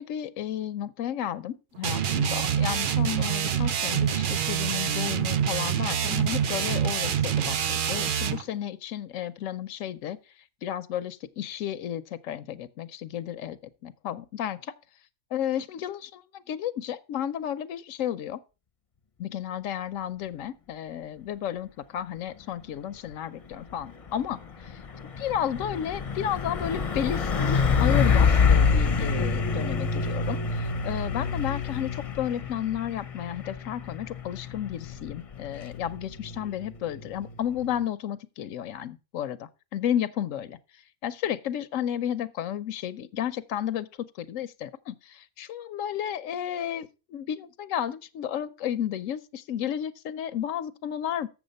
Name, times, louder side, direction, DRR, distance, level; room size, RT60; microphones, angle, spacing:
voice 1, 0.0-10.2 10.6-14.7 15.3-18.4 19.2-24.8 25.2-40.6 41.0-44.9 45.4-51.3, left 10 dB, 85° left, 1.0 m, -32 dB
sound 1, 1.8-8.4, right 8 dB, 55° right, 0.7 m, -26 dB
Truck, 23.5-37.8, left 5 dB, 35° left, 0.7 m, -27 dB
7.3 x 7.2 x 5.1 m
omnidirectional pair, 1.3 m